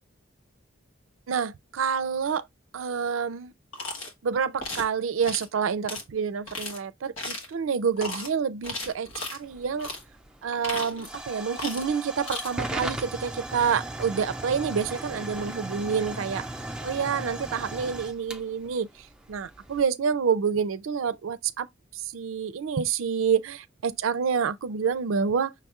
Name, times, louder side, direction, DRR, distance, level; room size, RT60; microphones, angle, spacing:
voice 1, 1.3-2.4 2.7-3.5 4.2-9.9 10.4-16.4 16.8-18.9 19.3-21.7 22.1-25.5, right 6 dB, 80° right, 0.4 m, -28 dB
sound 1, 3.7-4.1 4.6-4.9 5.2-5.5 5.9-6.0 6.5-6.8 7.2-7.5 8.0-8.3 8.6-9.4 9.8-10.0 10.5-11.2 11.6-11.9 12.2-12.5, left 2 dB, 85° left, 1.4 m, -35 dB
Hiss / Fire / Tick, 9.4-19.8, right 1 dB, 5° right, 0.5 m, -37 dB
5.8 x 2.3 x 2.9 m
head